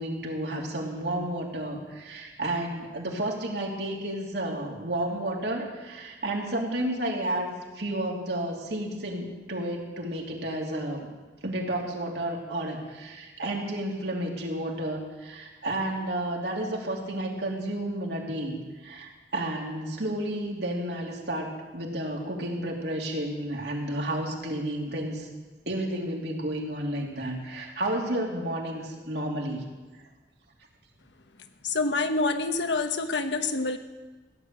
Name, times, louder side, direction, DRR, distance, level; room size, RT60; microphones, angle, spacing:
voice 1, 0.0-11.1 11.4-18.6 18.8-25.3 25.7-29.6, right 1 dB, 70° right, -1 dB, 3.0 m, -31 dB
voice 2, 31.6-33.8, left 3 dB, 85° left, 7 dB, 1.2 m, -27 dB
16.0 x 11.0 x 7.6 m, 1.3 s
head